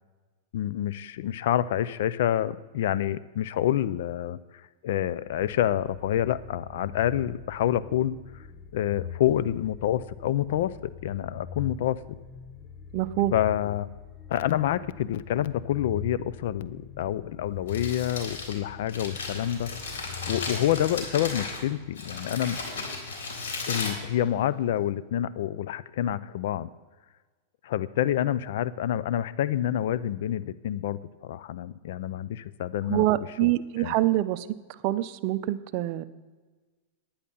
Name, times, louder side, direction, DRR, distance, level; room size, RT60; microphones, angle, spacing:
voice 1, 0.5-4.4 4.8-8.2 8.7-12.2 13.3-13.9 14.3-22.6 23.7-26.7 27.6-33.0 33.4-33.5 33.8-33.9, left 11 dB, 70° left, 17 dB, 0.5 m, -28 dB
sound 1, 5.2-22.1, left 7 dB, 25° left, 0.8 m, -43 dB
voice 2, 12.9-13.3 32.9-34.5 34.8-36.0, right 15 dB, 50° right, 13 dB, 0.6 m, -25 dB
Crumpling crinkling, 17.5-24.8, left 4 dB, 85° left, 3.7 m, -36 dB
10.5 x 10.0 x 5.5 m, 1.3 s
supercardioid pair, 140°, 0 cm